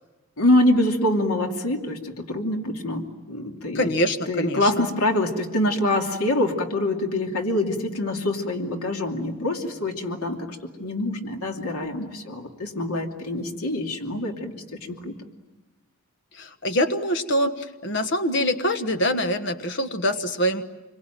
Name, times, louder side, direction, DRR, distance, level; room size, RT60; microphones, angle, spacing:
voice 1, 0.4-3.9 4.3-14.5 14.8-15.1, left 1 dB, 90° left, 2 dB, 2.7 m, -25 dB
voice 2, 3.7-4.7 16.3-20.6, equal, 55° left, 8 dB, 1.4 m, -24 dB
28.0 x 23.0 x 9.2 m, 1.1 s
head